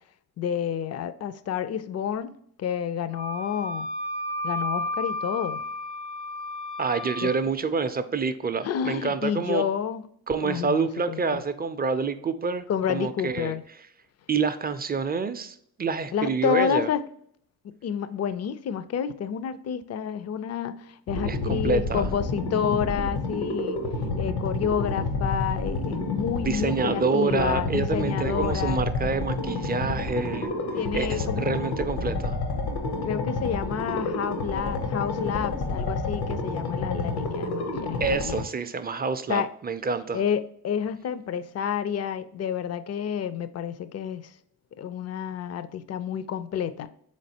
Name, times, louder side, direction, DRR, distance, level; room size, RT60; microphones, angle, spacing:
voice 1, 0.4-2.3 2.6-3.9 4.4-5.6 7.2-7.3 8.6-10.0 10.4-11.4 12.7-13.6 16.1-17.0 17.6-23.8 24.2-28.8 30.7-31.5 33.0-38.5 39.3-39.5 40.1-44.3 44.8-46.9, left 8 dB, 40° left, 13 dB, 0.4 m, -29 dB
Wind instrument woodwind instrument, 3.1-7.4, left 1 dB, 90° left, 1.1 m, -32 dB
voice 2, 6.8-9.7 10.3-13.5 14.3-16.9 21.2-22.0 26.4-30.5 30.9-32.4 38.0-40.2, right 5 dB, 25° right, 11 dB, 0.4 m, -27 dB
sound 1, 21.1-38.4, left 2 dB, 75° left, 0.8 m, -29 dB
3.7 x 3.2 x 2.7 m, 0.68 s
supercardioid pair, 45°, 39 cm